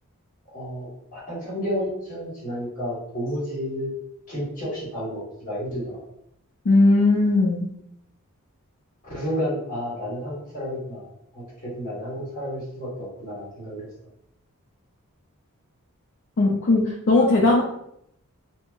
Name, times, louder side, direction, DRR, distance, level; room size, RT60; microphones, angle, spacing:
voice 1, 0.5-3.9 4.3-5.9 9.0-11.1 11.3-13.9, equal, 40° left, -6 dB, 1.4 m, -31 dB
voice 2, 6.7-7.7 16.4-17.6, left 2 dB, 55° left, -3 dB, 0.5 m, -18 dB
3.5 x 2.1 x 2.3 m, 0.75 s
head